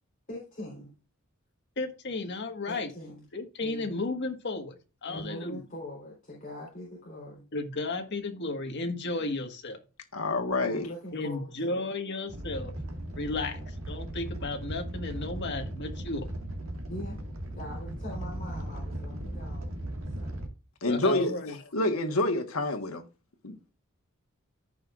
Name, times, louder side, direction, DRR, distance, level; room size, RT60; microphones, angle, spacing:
voice 1, 0.3-0.9 2.7-3.2 3.6-4.0 5.0-7.4 10.7-11.9 13.3-13.7 16.8-17.3 17.5-19.7 20.1-20.3, left 1 dB, 40° left, 3.8 m, -42 dB
voice 2, 1.8-2.9 3.3-5.6 7.5-9.8 11.1-12.7 13.1-13.6 13.9-16.2 20.8-21.6, left 2 dB, 55° left, 1.6 m, -33 dB
voice 3, 10.1-10.9 20.8-21.3 21.7-23.0 23.4-23.7, left 2 dB, 90° left, 1.5 m, -27 dB
Animal, 12.3-20.5, right 1 dB, 75° right, 1.9 m, -37 dB
14.5 x 5.6 x 2.5 m
head